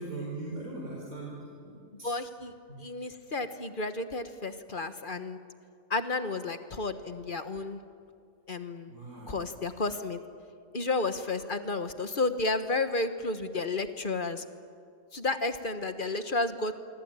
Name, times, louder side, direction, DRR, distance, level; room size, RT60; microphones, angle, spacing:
voice 1, 0.0-2.1 2.7-2.8 8.9-9.4, right 2 dB, 75° right, -3 dB, 4.7 m, -40 dB
voice 2, 2.0-2.5 2.8-5.4 5.9-7.8 8.5-8.9 9.3-10.2 10.7-14.4 15.1-16.8, left 3 dB, 40° left, 9 dB, 1.3 m, -32 dB
25.5 x 25.0 x 8.9 m, 2.3 s
omnidirectional pair, 1.5 m